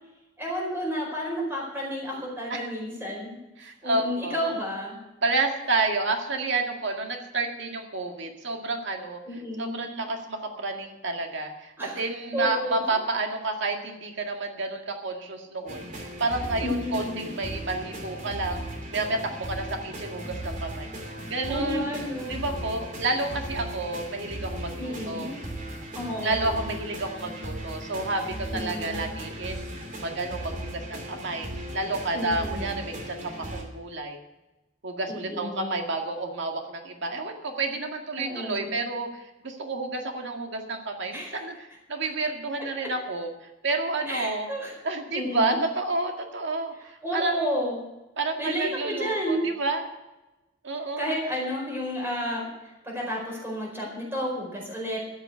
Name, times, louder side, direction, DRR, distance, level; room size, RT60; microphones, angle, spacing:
voice 1, 0.4-3.4 3.8-5.0 9.3-9.8 11.8-12.0 12.3-12.8 16.6-17.3 21.5-22.4 23.0-23.1 24.8-25.3 25.9-26.7 28.5-29.0 32.1-32.7 35.1-35.7 38.2-38.7 41.1-41.4 42.8-42.9 44.0-44.7 45.1-45.6 47.0-47.8 48.4-49.4 51.0-55.1, equal, 10° right, -3 dB, 4.8 m, -31 dB
voice 2, 3.6-4.5 5.2-9.2 9.6-18.6 18.9-20.9 21.3-21.9 22.2-25.3 26.2-29.6 30.0-34.2 34.8-44.5 44.8-47.5 48.2-49.8 50.6-51.1, right 3 dB, 65° right, 3 dB, 2.0 m, -30 dB
sound 1, 15.7-33.6, right 1 dB, 45° right, 2.9 m, -37 dB
13.5 x 7.5 x 8.2 m, 1.0 s
head